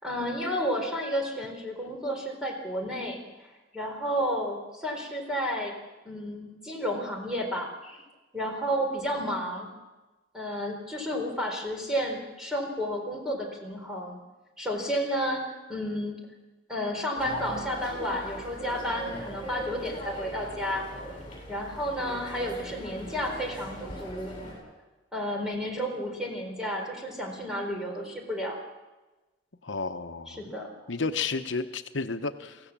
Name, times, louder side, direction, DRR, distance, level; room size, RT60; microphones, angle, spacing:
voice 1, 0.0-3.2 3.7-5.7 6.0-8.0 8.3-9.7 10.3-14.2 14.6-15.4 15.7-16.2 16.7-20.8 21.5-24.3 25.1-28.6 30.3-30.9, equal, 5° right, 0 dB, 4.2 m, -31 dB
sound 1, 17.2-24.5, equal, 30° left, 7.7 m, -39 dB
voice 2, 29.6-30.4 30.9-32.6, left 4 dB, 85° left, 9 dB, 0.9 m, -31 dB
24.0 x 16.0 x 7.4 m, 1.1 s
head